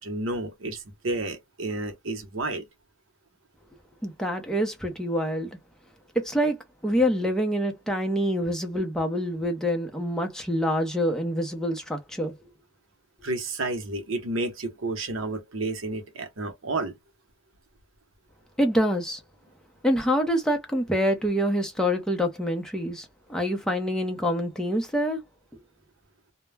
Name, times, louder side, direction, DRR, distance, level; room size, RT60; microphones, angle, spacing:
voice 1, 0.0-2.6 13.2-17.0, right 2 dB, 75° right, 0.8 m, -31 dB
voice 2, 4.0-5.6 6.1-12.3 18.6-19.2 19.8-25.2, equal, 5° left, 0.6 m, -26 dB
2.2 x 2.0 x 3.2 m
head